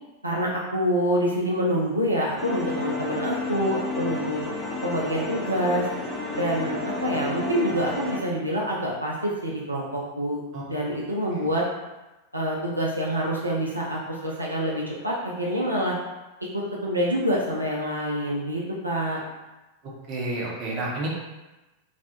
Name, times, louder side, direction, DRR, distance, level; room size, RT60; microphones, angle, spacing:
voice 1, 0.2-4.4 4.8-5.9 6.3-10.4 10.7-11.6 12.3-16.0 16.5-19.2, equal, 85° right, -4 dB, 0.3 m, -26 dB
sound 1, 2.4-8.2, left 2 dB, 10° left, 0.4 m, -31 dB
voice 2, 20.1-21.1, right 2 dB, 40° right, -3 dB, 0.6 m, -29 dB
2.3 x 2.0 x 2.8 m, 1.1 s
figure-of-eight pair, 90°, 0 cm